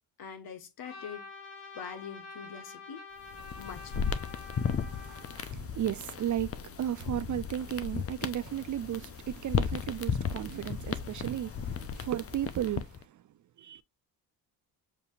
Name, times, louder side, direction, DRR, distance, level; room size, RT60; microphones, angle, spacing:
voice 1, 0.2-1.2 1.7-3.0 3.6-4.2, left 7 dB, 65° left, 1.3 m, -44 dB
Trumpet, 0.8-5.5, left 4 dB, 80° left, 2.5 m, -47 dB
sound 1, 3.2-13.0, left 6 dB, 35° left, 0.6 m, -35 dB
voice 2, 4.9-13.2 13.6-13.8, right 11 dB, 50° right, 0.5 m, -35 dB
7.1 x 2.7 x 2.4 m
cardioid pair, 70°, 40 cm